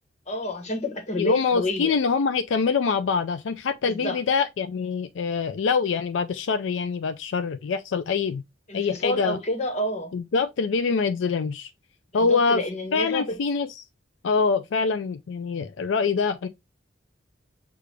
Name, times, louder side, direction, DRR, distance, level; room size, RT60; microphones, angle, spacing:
voice 1, 0.3-1.9 3.8-4.2 8.7-10.1 12.3-13.4, left 1 dB, 40° left, 1.2 m, -29 dB
voice 2, 1.2-8.4 8.7-9.4 10.1-11.7 12.1-12.6 12.9-13.8 14.2-16.5, left 5 dB, 80° left, 0.4 m, -25 dB
6.6 x 2.4 x 3.3 m
head